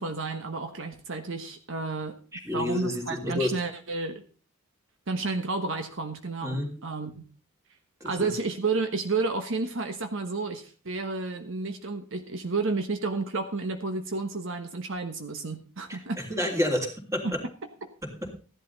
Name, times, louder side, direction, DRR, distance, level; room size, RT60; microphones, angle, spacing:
voice 1, 0.0-2.2 2.5-4.2 5.1-7.2 8.0-16.2 17.2-17.3 17.8-17.9, right 3 dB, 65° right, 7 dB, 1.2 m, -31 dB
voice 2, 2.4-3.5 6.4-6.7 8.0-8.3 15.9-16.0 16.3-17.2 18.0-18.3, left 1 dB, 15° right, 2 dB, 3.0 m, -29 dB
15.0 x 11.5 x 4.0 m, 0.38 s
head